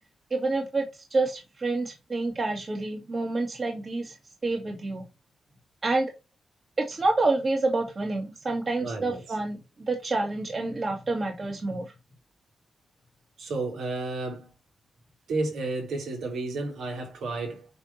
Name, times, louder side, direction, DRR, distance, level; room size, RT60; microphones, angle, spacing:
voice 1, 0.3-0.8 1.1-4.1 4.4-5.0 5.8-6.1 6.8-11.9, right 2 dB, 45° right, 2.6 m, -28 dB
voice 2, 8.8-9.2 13.4-14.5 15.3-17.7, right 3 dB, 80° right, 3.6 m, -32 dB
9.4 x 3.7 x 2.9 m
supercardioid pair, 50°, 0 cm